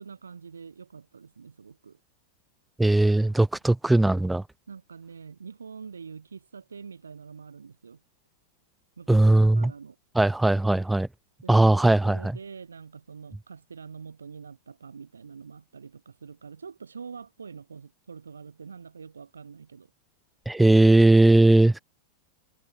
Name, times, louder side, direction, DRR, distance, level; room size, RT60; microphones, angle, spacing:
voice 1, 0.0-2.0 4.7-8.0 9.0-10.0 11.4-19.9, right 5 dB, 75° right, 7.8 m, -45 dB
voice 2, 2.8-4.4 9.1-9.7 10.1-11.1 11.5-12.4 20.5-21.8, right 2 dB, 5° right, 0.8 m, -19 dB
figure-of-eight pair, 90°, 0 cm